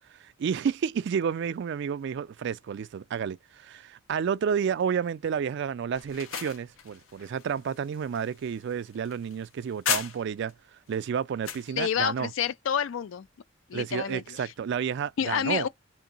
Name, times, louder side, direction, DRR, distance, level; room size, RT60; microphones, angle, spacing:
voice 1, 0.2-10.5 10.9-12.3 13.7-15.7, right 7 dB, 60° right, 0.3 m, -30 dB
sound 1, 5.9-10.5 10.9-11.7, left 7 dB, 85° left, 0.9 m, -36 dB
voice 2, 11.8-13.3 13.7-14.4 15.2-15.7, left 8 dB, 70° left, 0.4 m, -28 dB
3.8 x 2.6 x 3.8 m
head